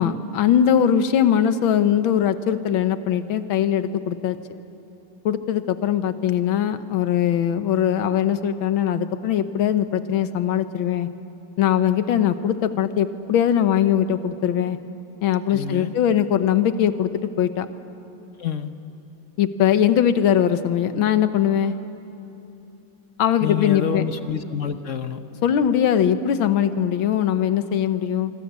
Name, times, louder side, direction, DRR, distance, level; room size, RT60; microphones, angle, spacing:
voice 1, 0.0-4.4 5.3-11.1 11.6-14.8 15.2-17.1 17.4-17.7 19.4-21.8 23.2-24.0 25.4-28.3, left 9 dB, 70° left, 11 dB, 1.8 m, -21 dB
voice 2, 15.5-15.9 18.4-18.7 23.4-25.2, left 8 dB, 50° left, 9 dB, 0.9 m, -27 dB
25.5 x 25.0 x 8.2 m, 2.9 s
omnidirectional pair, 2.4 m